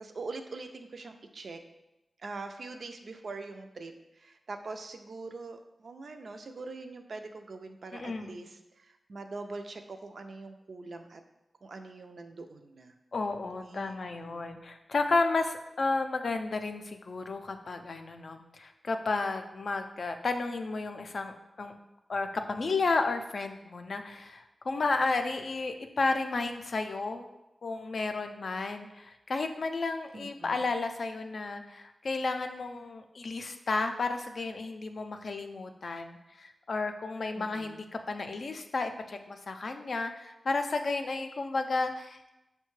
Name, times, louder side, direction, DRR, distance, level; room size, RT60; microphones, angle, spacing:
voice 1, 0.0-1.6 2.2-11.2 11.6-12.9 13.6-14.4 30.1-30.6 37.4-37.8, right 3 dB, 65° right, 6 dB, 0.3 m, -43 dB
voice 2, 7.9-8.4 13.1-21.3 21.6-21.7 22.1-27.3 27.6-37.8 38.1-42.3, left 3 dB, 65° left, 6 dB, 0.3 m, -32 dB
5.5 x 2.2 x 3.0 m, 0.93 s
wide cardioid pair, 75°, 0 cm